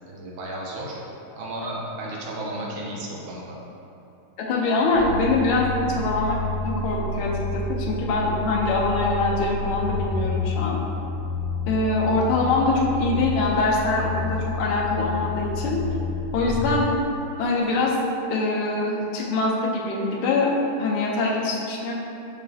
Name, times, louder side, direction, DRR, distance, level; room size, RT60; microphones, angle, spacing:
voice 1, 0.1-1.0 1.4-3.6, right 1 dB, 80° right, -3 dB, 1.6 m, -33 dB
voice 2, 4.4-6.4 6.6-10.8 11.7-15.8 16.3-16.9 17.4-18.0 18.3-20.5 20.8-21.9, left 3 dB, 85° left, -2 dB, 1.5 m, -23 dB
sound 1, 4.9-16.8, left 3 dB, 50° right, 1.4 m, -29 dB
6.5 x 3.1 x 2.7 m, 2.9 s
omnidirectional pair, 2.3 m